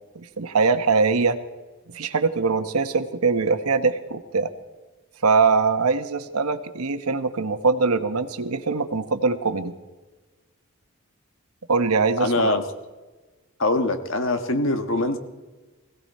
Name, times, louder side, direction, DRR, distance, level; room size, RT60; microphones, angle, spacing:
voice 1, 0.1-1.4 1.9-4.5 5.2-9.7 11.7-12.3, right 4 dB, 85° right, 9 dB, 1.1 m, -22 dB
voice 2, 12.2-12.6 13.6-15.2, left 2 dB, 60° left, 7 dB, 1.5 m, -23 dB
20.5 x 16.0 x 4.3 m, 1.2 s
head